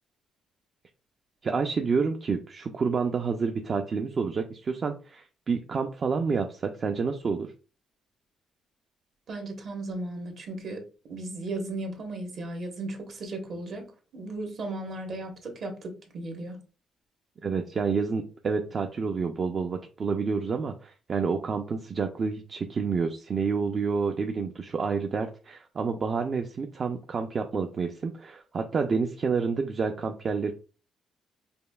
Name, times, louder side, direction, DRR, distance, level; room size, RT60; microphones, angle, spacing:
voice 1, 1.4-7.5 17.4-30.5, right 5 dB, 45° right, 0.4 m, -29 dB
voice 2, 9.3-10.8 11.1-13.8 14.1-16.6, right 2 dB, 60° right, 1.1 m, -36 dB
5.1 x 2.3 x 2.2 m
cardioid pair, 90°, 0 cm